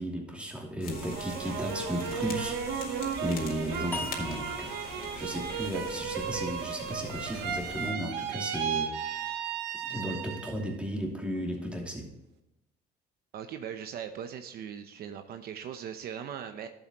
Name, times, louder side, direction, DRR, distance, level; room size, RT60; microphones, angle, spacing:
voice 1, 0.0-2.6 3.2-4.7 5.2-9.5 9.8-12.1, equal, 5° right, 0 dB, 2.7 m, -35 dB
sound 1, 0.8-7.9, left 5 dB, 60° left, 2.4 m, -43 dB
sound 2, 0.9-10.7 11.1-11.8, right 7 dB, 90° right, 1.0 m, -35 dB
sound 3, 3.9-7.1, left 2 dB, 10° left, 0.8 m, -42 dB
voice 2, 13.3-16.7, right 8 dB, 65° right, 7 dB, 0.8 m, -39 dB
11.5 x 7.9 x 3.0 m, 0.88 s
cardioid pair, 110°, 17 cm